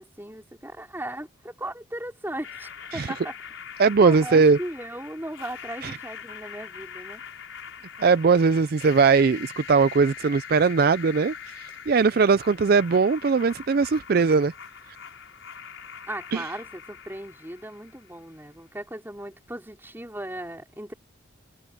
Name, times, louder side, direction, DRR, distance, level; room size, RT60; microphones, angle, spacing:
voice 1, 0.0-3.3 4.0-7.2 16.1-20.9, right 1 dB, 10° right, 4.3 m, -37 dB
sound 1, 2.4-18.4, left 8 dB, 75° left, 5.2 m, -42 dB
voice 2, 3.8-4.6 5.8-5.9 8.0-11.3 11.9-14.5 16.3-16.4, right 4 dB, 50° right, 0.4 m, -20 dB
head